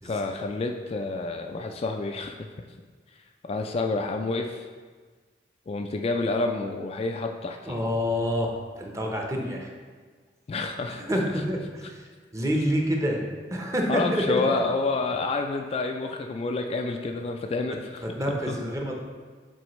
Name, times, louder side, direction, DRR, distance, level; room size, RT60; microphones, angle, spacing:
voice 1, 0.0-2.4 3.4-4.7 5.7-7.8 10.5-11.0 13.9-18.0 18.5-18.6, left 3 dB, 35° left, 4 dB, 0.3 m, -29 dB
voice 2, 7.7-9.7 11.0-12.0 12.3-13.2 13.5-14.6 18.0-19.0, equal, 20° right, 0 dB, 0.8 m, -27 dB
7.7 x 4.2 x 3.1 m, 1.5 s
head